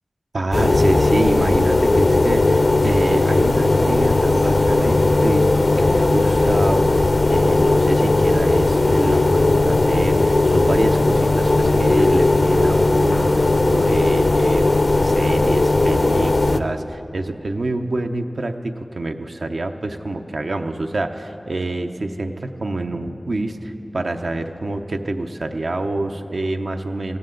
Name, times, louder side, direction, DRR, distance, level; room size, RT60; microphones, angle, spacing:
voice 1, 0.3-14.7 15.0-27.2, right 2 dB, 80° right, 5 dB, 0.7 m, -26 dB
sound 1, 0.5-16.6, left 2 dB, 65° left, 0.5 m, -17 dB
18.5 x 15.0 x 3.9 m, 3.0 s
wide cardioid pair, 40°, 0 cm